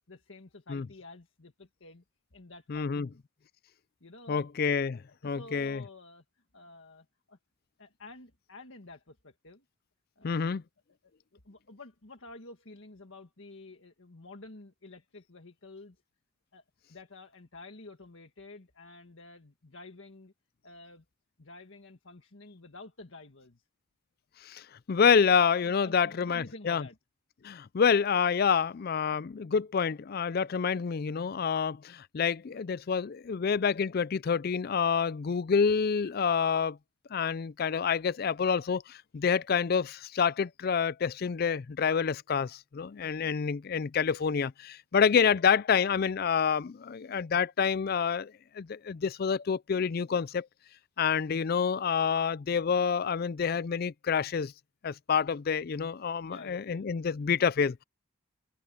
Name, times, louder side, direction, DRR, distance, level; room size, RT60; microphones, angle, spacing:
voice 1, 0.0-2.0 2.3-3.2 4.0-4.5 4.8-6.2 6.5-7.4 7.8-9.6 10.2-10.5 11.3-16.0 16.5-16.6 16.9-20.3 20.6-21.0 21.4-23.6 25.1-27.0 32.5-32.6 41.3-41.5 43.0-43.3 44.9-45.0 56.2-56.9, left 2 dB, 65° left, 1.7 m, -50 dB
voice 2, 2.7-3.1 4.3-5.8 10.2-10.6 24.5-24.6 24.9-26.8 27.4-36.8 37.1-50.5 51.0-54.5 54.8-57.8, left 6 dB, 45° left, 0.4 m, -28 dB
head